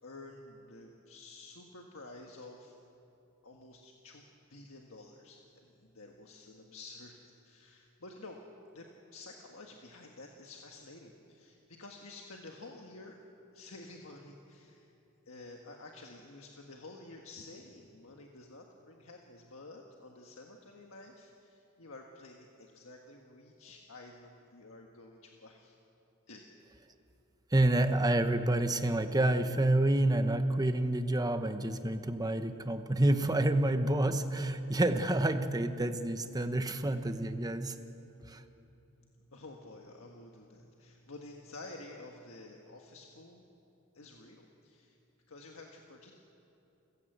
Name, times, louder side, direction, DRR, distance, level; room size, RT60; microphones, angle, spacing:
voice 1, 0.0-2.7 3.4-4.2 4.5-8.4 8.7-8.9 9.1-13.2 13.5-14.9 15.2-25.7 26.3-26.4 38.9-43.4 43.9-45.0 45.3-46.1, left 2 dB, 70° left, 1 dB, 1.6 m, -51 dB
voice 2, 27.5-37.8 38.3-38.4, right 1 dB, 20° right, 8 dB, 1.0 m, -28 dB
29.5 x 16.0 x 8.1 m, 2.8 s
head